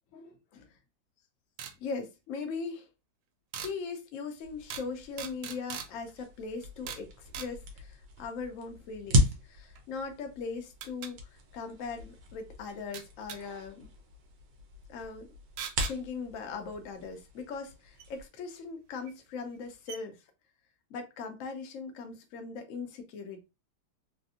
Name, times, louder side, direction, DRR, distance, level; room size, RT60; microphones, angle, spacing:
voice 1, 0.1-0.7 1.8-2.9 3.6-13.9 14.9-15.3 15.9-20.2 20.9-23.4, left 4 dB, 85° left, 0.7 m, -40 dB
sound 1, 1.6-1.8 3.5-3.7 4.7-4.9 5.2-5.9 6.9-7.1 7.3-7.5 9.8-9.9 10.8-11.1 12.9-13.4 15.6-16.0 18.0-18.1 19.1-19.2 19.5-19.6 19.9-20.0, right 8 dB, 90° right, 1.4 m, -40 dB
sound 2, 4.4-18.3, equal, 65° right, 1.2 m, -36 dB
3.4 x 2.5 x 2.7 m
omnidirectional pair, 2.2 m